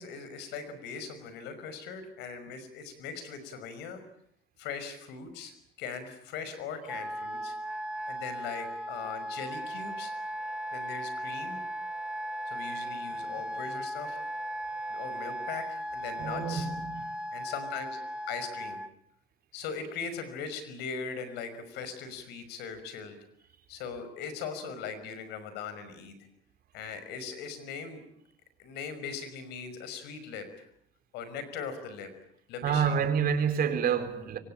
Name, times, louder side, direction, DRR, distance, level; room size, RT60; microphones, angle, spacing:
voice 1, 0.0-4.0 4.6-5.5 5.8-7.5 8.1-10.1 10.7-11.6 12.5-14.2 14.9-16.7 17.3-18.0 18.3-18.8 19.5-23.2 23.7-26.2 26.7-28.0 28.6-30.7 31.1-32.1 32.5-33.1, left 6 dB, 90° left, 5.6 m, -40 dB
Wind instrument woodwind instrument, 6.9-18.9, right 1 dB, 5° right, 2.0 m, -37 dB
voice 2, 16.2-17.0 32.6-34.4, right 7 dB, 60° right, 4.3 m, -28 dB
26.5 x 23.5 x 8.9 m
cardioid pair, 110°, 17 cm